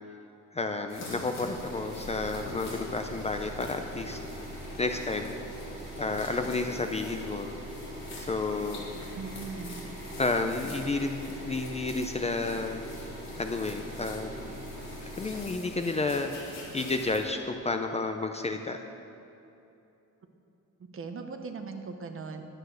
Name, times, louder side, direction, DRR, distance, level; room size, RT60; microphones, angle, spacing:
voice 1, 0.5-4.2 4.8-5.3 6.0-7.5 8.3-8.8 10.2-12.8 13.4-14.6 15.2-16.3 16.7-18.8, left 3 dB, 20° left, 6 dB, 0.5 m, -31 dB
sound 1, 0.9-17.2, left 1 dB, 55° left, 3.1 m, -45 dB
sound 2, 1.6-15.5, right 1 dB, 20° right, 2.9 m, -42 dB
voice 2, 9.2-9.7 20.9-22.4, right 4 dB, 40° right, 6 dB, 1.0 m, -39 dB
11.5 x 9.0 x 6.4 m, 2.8 s
cardioid pair, 155°, 32 cm